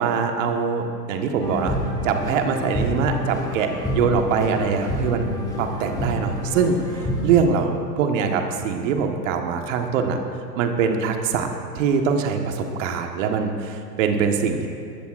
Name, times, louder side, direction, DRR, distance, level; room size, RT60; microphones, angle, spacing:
voice 1, 0.0-1.8 2.0-5.3 5.6-10.2 10.6-11.5 11.7-14.7, right 6 dB, 50° right, 4 dB, 1.5 m, -23 dB
sound 1, 1.4-7.4, equal, 10° left, 2.4 m, -28 dB
21.0 x 14.0 x 2.5 m, 2.4 s
figure-of-eight pair, 110°, 50 cm